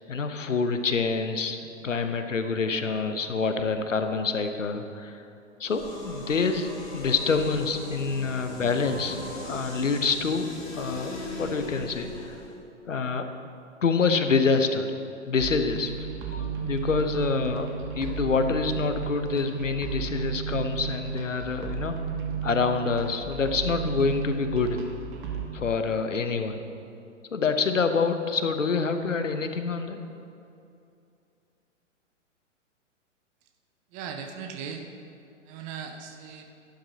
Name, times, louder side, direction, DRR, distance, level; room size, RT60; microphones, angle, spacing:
voice 1, 0.1-1.6 1.8-5.2 5.6-9.2 9.4-10.5 10.7-11.1 11.4-12.4 12.9-13.3 13.8-14.9 15.3-15.9 16.3-22.0 22.4-24.8 25.5-26.6 27.3-30.0, left 4 dB, 80° left, 8 dB, 0.9 m, -26 dB
sound 1, 5.6-12.6, left 2 dB, 35° left, 2.7 m, -38 dB
sound 2, 15.4-25.5, right 7 dB, 40° right, 1.4 m, -33 dB
voice 2, 33.9-34.8 35.5-36.4, right 6 dB, 20° right, 5 dB, 0.6 m, -38 dB
11.5 x 11.5 x 2.8 m, 2.6 s
figure-of-eight pair, 110°, 37 cm